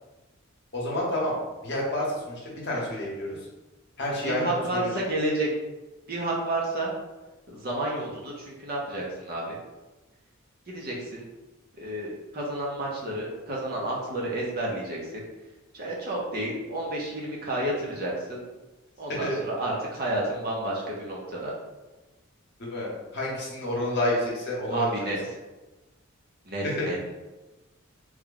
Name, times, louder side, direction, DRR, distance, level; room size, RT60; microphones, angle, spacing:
voice 1, 0.7-1.4 1.6-3.4 4.0-4.9 19.2-19.4 22.7-25.1 26.6-26.9, left 1 dB, 50° left, -4 dB, 1.0 m, -29 dB
voice 2, 4.2-5.5 6.1-6.9 7.5-9.6 10.7-11.2 11.8-15.2 15.7-18.4 19.0-21.5 24.7-25.2 26.5-27.1, right 1 dB, 45° right, -3 dB, 0.7 m, -30 dB
3.2 x 2.2 x 3.8 m, 1.1 s
head